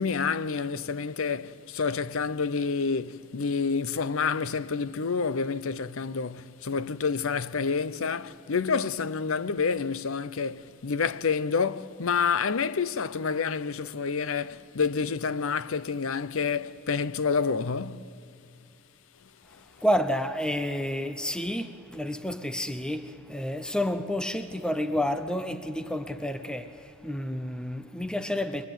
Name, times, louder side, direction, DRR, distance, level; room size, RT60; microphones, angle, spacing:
voice 1, 0.0-18.1 19.5-19.6, left 5 dB, 70° left, 0.6 m, -28 dB
voice 2, 19.8-28.7, equal, 5° left, 0.7 m, -30 dB
28.5 x 22.5 x 9.2 m
head